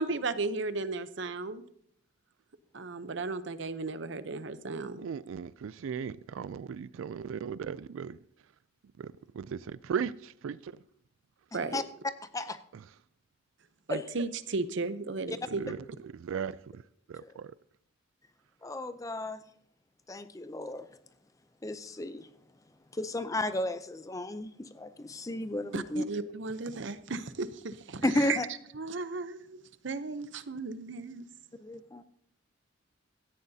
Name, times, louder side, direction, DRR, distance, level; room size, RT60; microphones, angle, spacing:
voice 1, 0.0-1.6 2.7-5.1 11.5-11.8 13.9-15.7 25.7-28.4 28.7-29.6 29.8-31.3, right 3 dB, 60° right, 0.7 m, -35 dB
voice 2, 5.0-8.2 9.0-10.7 15.6-15.8 16.1-16.8 17.1-17.5, right 7 dB, 80° right, 0.3 m, -37 dB
voice 3, 18.6-19.4 20.1-20.9 21.6-22.3 22.9-26.0 28.0-28.4 31.6-32.0, left 1 dB, 15° left, 0.5 m, -33 dB
16.5 x 13.5 x 2.8 m
head